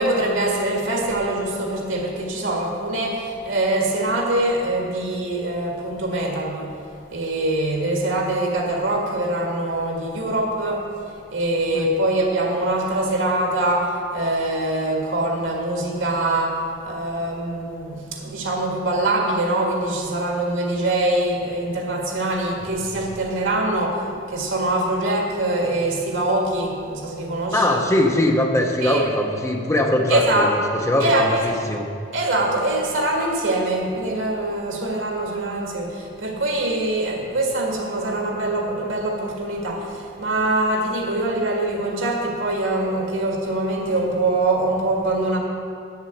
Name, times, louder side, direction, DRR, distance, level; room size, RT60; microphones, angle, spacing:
voice 1, 0.0-6.7 7.1-10.8 11.3-24.0 24.3-27.8 28.8-29.1 30.1-30.5 31.0-31.4 32.1-45.4, right 2 dB, 80° right, 0 dB, 2.0 m, -23 dB
voice 2, 27.5-31.9, left 1 dB, 15° left, 2 dB, 0.8 m, -21 dB
9.0 x 7.1 x 7.9 m, 2.4 s
head